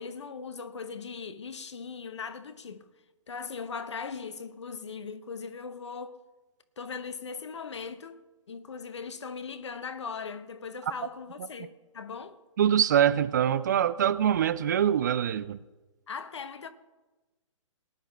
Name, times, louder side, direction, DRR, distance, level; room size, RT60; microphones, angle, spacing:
voice 1, 0.0-2.8 3.3-6.2 6.8-8.2 8.5-12.4 16.1-16.7, left 5 dB, 60° left, 1.0 m, -39 dB
voice 2, 12.6-15.6, right 9 dB, 35° right, 0.4 m, -24 dB
18.5 x 11.0 x 3.3 m
figure-of-eight pair, 125°, 17 cm